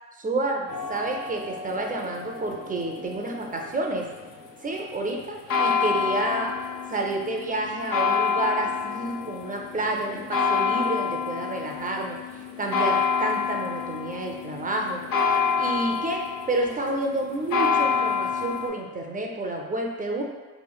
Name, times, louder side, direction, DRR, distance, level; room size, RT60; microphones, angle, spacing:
voice 1, 0.2-4.1 4.6-6.5 6.9-12.2 12.6-15.0 15.6-16.2 16.5-20.2, right 2 dB, 25° right, 1 dB, 0.4 m, -29 dB
sound 1, 0.7-18.7, left 6 dB, 60° left, 0.5 m, -28 dB
3.0 x 2.4 x 2.2 m, 1.3 s
cardioid pair, 70°, 39 cm